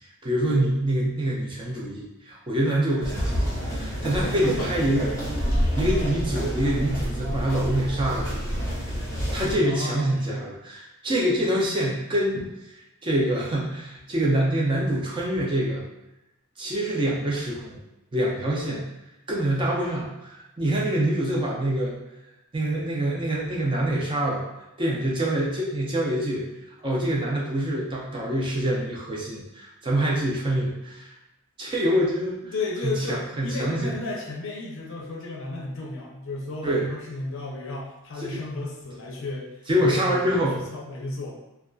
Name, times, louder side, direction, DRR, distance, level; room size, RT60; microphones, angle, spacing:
voice 1, 0.2-8.5 9.3-12.4 12.7-15.8 16.6-17.8 18.1-18.9 19.3-21.9 22.5-24.5 24.8-26.5 26.8-31.2 31.6-32.5 32.8-33.9 36.6-36.9 38.2-38.4 39.7-40.6, right 1 dB, 20° right, -3 dB, 0.4 m, -25 dB
sound 1, 3.0-9.6, equal, 15° left, 0.8 m, -28 dB
voice 2, 4.3-4.7 9.6-10.4 32.4-39.5 39.8-41.4, left 2 dB, 60° left, -2 dB, 0.5 m, -33 dB
2.5 x 2.2 x 2.2 m, 0.93 s
head